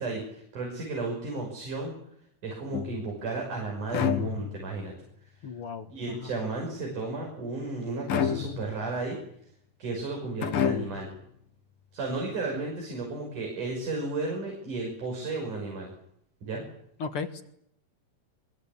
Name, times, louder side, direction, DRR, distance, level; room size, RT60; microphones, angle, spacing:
voice 1, 0.0-1.9 2.4-4.9 5.9-9.2 9.8-11.1 11.9-15.9 16.4-16.6, right 3 dB, 70° right, 1 dB, 7.5 m, -33 dB
sound 1, 2.7-3.3 3.9-4.8 8.1-8.9 10.4-11.2, left 8 dB, 90° left, 3.3 m, -29 dB
voice 2, 5.4-5.9 6.1-6.3 17.0-17.4, left 5 dB, 50° left, 8 dB, 2.1 m, -35 dB
24.0 x 24.0 x 8.7 m, 0.73 s
omnidirectional pair, 3.8 m